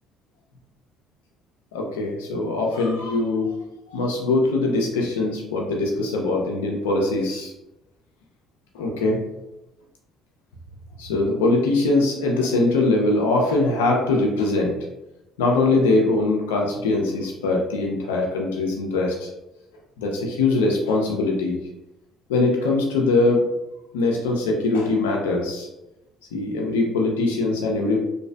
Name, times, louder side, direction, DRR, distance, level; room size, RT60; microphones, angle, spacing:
voice 1, 1.7-3.6 3.9-7.5 8.7-9.2 11.0-14.8 15.4-19.3 20.0-21.6 22.3-23.5 23.9-25.7 26.3-28.0, left 2 dB, 90° left, 0 dB, 0.3 m, -22 dB
2.4 x 2.3 x 2.2 m, 0.92 s
hypercardioid pair, 60°, 0 cm